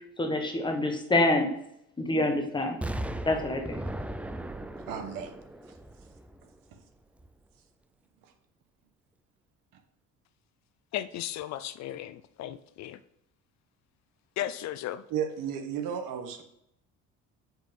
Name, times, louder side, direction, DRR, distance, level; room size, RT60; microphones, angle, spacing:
voice 1, 0.2-1.5 2.0-2.8 3.2-3.8, left 2 dB, 15° left, 1.2 m, -26 dB
Explosion, 2.8-6.7 7.2-7.3, right 1 dB, 5° right, 0.4 m, -37 dB
voice 2, 4.9-5.4 15.1-16.4, right 8 dB, 70° right, 1.6 m, -33 dB
voice 3, 10.9-13.0 14.4-15.0, left 12 dB, 55° left, 0.5 m, -35 dB
7.7 x 6.3 x 5.3 m
cardioid pair, 150°, 34 cm